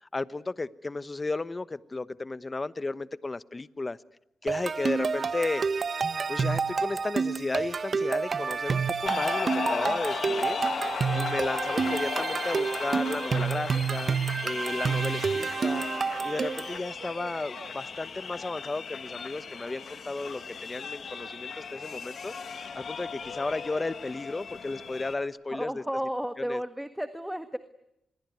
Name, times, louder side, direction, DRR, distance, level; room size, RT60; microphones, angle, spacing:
voice 1, 0.0-4.0 4.4-5.6 6.3-10.6 11.1-14.2 14.4-15.9 16.2-22.3 22.7-25.8 26.4-26.6, left 3 dB, 30° left, 16 dB, 1.1 m, -34 dB
sound 1, 4.5-16.8, right 5 dB, 55° right, 1.4 m, -29 dB
sound 2, 9.1-25.1, left 6 dB, 65° left, 2.1 m, -36 dB
sound 3, 9.5-25.3, right 6 dB, 85° right, 4.0 m, -51 dB
voice 2, 25.5-27.6, equal, 5° right, 9 dB, 1.7 m, -33 dB
27.0 x 22.5 x 9.4 m, 0.81 s
cardioid pair, 65°, 0 cm